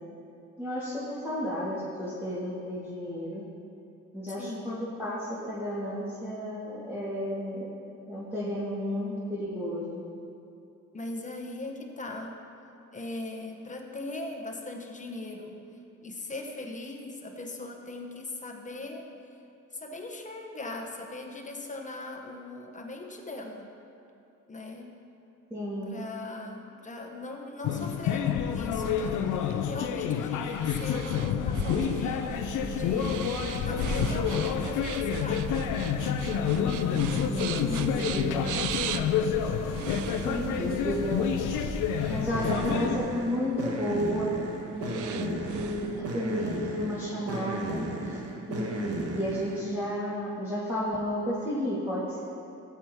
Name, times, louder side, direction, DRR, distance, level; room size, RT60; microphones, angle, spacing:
voice 1, 0.6-3.5 4.1-7.7 8.1-10.0 25.5-26.0 37.1-38.5 40.2-41.6 42.1-44.4 44.7-48.2 48.5-52.2, equal, 10° right, -10 dB, 2.2 m, -32 dB
voice 2, 4.3-4.8 10.9-12.4 12.9-15.5 16.0-19.1 19.7-23.7 24.5-24.9 25.8-35.7 36.7-37.1, left 2 dB, 25° left, 2 dB, 1.2 m, -40 dB
sound 1, 27.6-43.0, left 8 dB, 85° left, 0.6 m, -29 dB
Men breathing and slurp, 29.0-46.0, right 10 dB, 85° right, 0.5 m, -41 dB
sound 2, 32.3-49.7, right 2 dB, 55° right, 1.3 m, -38 dB
14.0 x 8.3 x 3.0 m, 2.8 s
cardioid pair, 90°, 30 cm